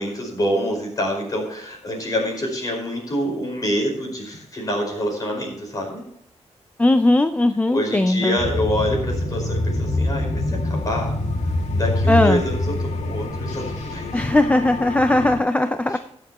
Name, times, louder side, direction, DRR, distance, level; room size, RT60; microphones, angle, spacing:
voice 1, 0.0-6.0 7.7-11.1 11.7-14.2 15.9-16.0, equal, 30° left, 0 dB, 5.0 m, -26 dB
voice 2, 6.8-8.4 12.1-12.4 14.1-16.0, left 1 dB, 10° left, 9 dB, 0.4 m, -18 dB
sound 1, 8.4-15.4, left 2 dB, 80° left, 2.0 m, -25 dB
22.0 x 7.5 x 3.0 m, 0.71 s
wide cardioid pair, 175°, 12 cm